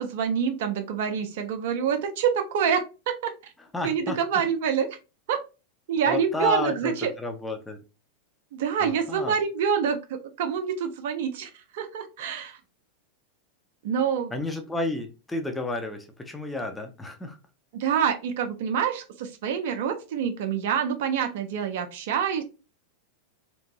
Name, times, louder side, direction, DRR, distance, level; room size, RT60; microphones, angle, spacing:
voice 1, 0.0-3.5 3.8-5.0 5.3-5.4 5.9-7.1 8.5-12.6 13.8-14.3 17.7-22.4, right 7 dB, 55° right, 6 dB, 0.4 m, -26 dB
voice 2, 3.7-4.2 6.1-7.8 8.8-9.4 14.3-17.4, left 2 dB, 10° left, 4 dB, 0.5 m, -31 dB
2.9 x 2.5 x 2.6 m, 0.30 s
figure-of-eight pair, 90°, 0 cm